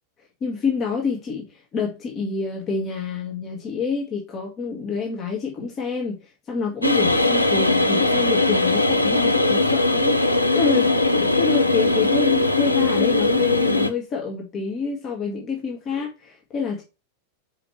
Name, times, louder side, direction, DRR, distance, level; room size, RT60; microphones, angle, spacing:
voice 1, 0.4-16.8, left 5 dB, 30° left, 1.6 m, -27 dB
sound 1, 6.8-13.9, left 2 dB, 85° left, 0.6 m, -20 dB
5.0 x 4.5 x 4.5 m
figure-of-eight pair, 90°, 0 cm